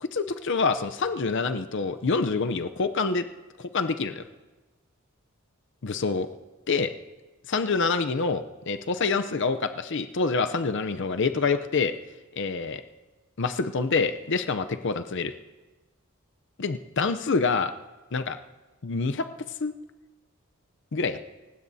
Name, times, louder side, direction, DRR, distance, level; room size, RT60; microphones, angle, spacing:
voice 1, 0.0-3.2 3.6-4.2 5.8-6.3 6.7-6.9 7.5-11.9 12.3-12.8 13.4-15.3 16.6-17.7 18.1-18.4 18.8-19.3 19.6-19.7 20.9-21.2, left 4 dB, 55° left, 9 dB, 0.6 m, -26 dB
28.5 x 16.0 x 2.7 m, 1.2 s
head